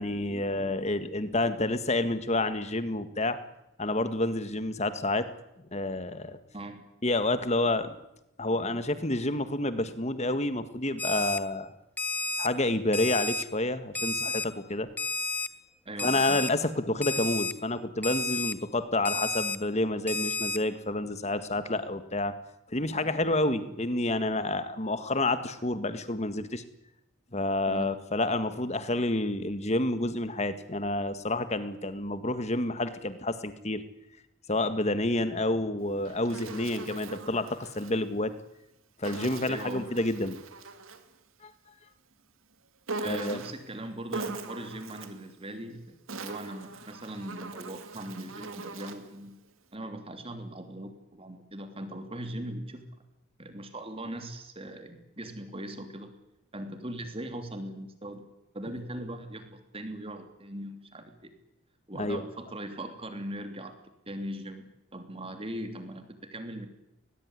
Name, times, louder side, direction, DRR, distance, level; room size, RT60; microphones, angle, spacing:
voice 1, 0.0-3.4 3.8-5.3 5.7-6.4 7.0-8.0 8.4-11.7 12.4-14.9 16.0-22.3 22.7-26.6 27.3-33.8 34.5-38.3 39.0-40.4 41.4-41.5 43.1-43.4 61.9-62.2, left 2 dB, 30° left, 11 dB, 1.8 m, -29 dB
Alarm, 11.0-11.4 12.0-12.5 12.9-13.4 13.9-14.5 15.0-15.5 16.0-16.5 17.0-17.5 18.0-18.5 19.0-19.6 20.1-20.6, left 3 dB, 10° left, 0.9 m, -31 dB
voice 2, 15.8-16.4 27.7-28.0 39.5-39.9 43.0-49.4 49.7-52.9 53.4-56.1 56.5-61.3 61.9-63.8 64.1-66.7, right 1 dB, 25° right, 7 dB, 3.1 m, -40 dB
Insect, 35.8-38.0 39.0-41.1 42.9-43.7 44.1-45.2 45.9-49.1, right 3 dB, 70° right, 2.4 m, -41 dB
20.5 x 20.5 x 9.9 m, 0.86 s
head